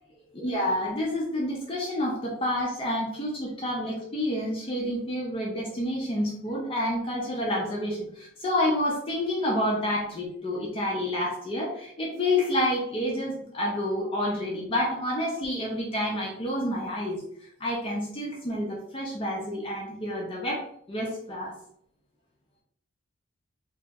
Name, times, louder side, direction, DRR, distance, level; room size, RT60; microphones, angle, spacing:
voice 1, 0.3-17.2 17.6-20.6 20.9-21.5, left 1 dB, 25° left, -3 dB, 0.4 m, -29 dB
2.6 x 2.0 x 3.4 m, 0.71 s
head